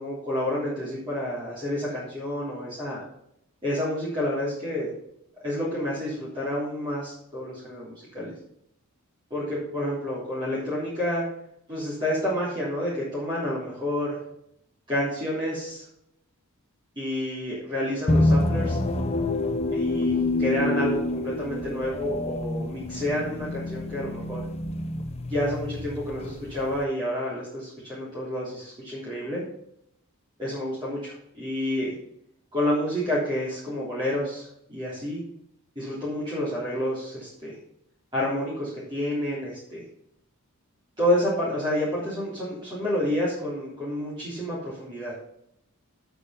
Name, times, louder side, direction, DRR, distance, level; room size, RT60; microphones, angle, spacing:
voice 1, 0.0-3.0 3.6-4.9 5.4-8.3 9.3-11.2 11.7-14.2 14.9-15.8 17.0-18.8 19.7-24.5 25.3-29.4 30.4-31.9 32.5-35.2 35.8-37.6 38.1-39.8 41.0-45.1, left 1 dB, 20° right, -9 dB, 3.5 m, -29 dB
sound 1, 18.1-26.8, left 2 dB, 30° left, 0.7 m, -27 dB
8.4 x 7.0 x 5.7 m, 0.77 s
head